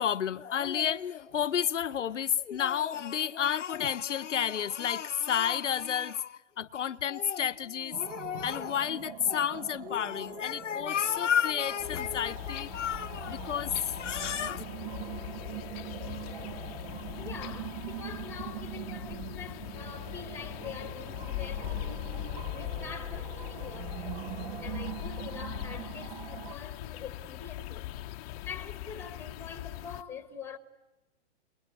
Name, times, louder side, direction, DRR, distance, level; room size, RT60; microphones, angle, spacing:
voice 1, 0.0-14.6, left 9 dB, 85° left, 0.8 m, -31 dB
sound 1, 7.9-26.6, right 12 dB, 45° right, 1.1 m, -43 dB
sound 2, 11.8-30.0, left 16 dB, 30° left, 0.8 m, -40 dB
voice 2, 17.2-22.0 22.5-24.2 24.6-27.9 28.4-30.6, left 6 dB, 5° left, 1.6 m, -44 dB
26.5 x 21.5 x 9.5 m
hypercardioid pair, 135°, 36 cm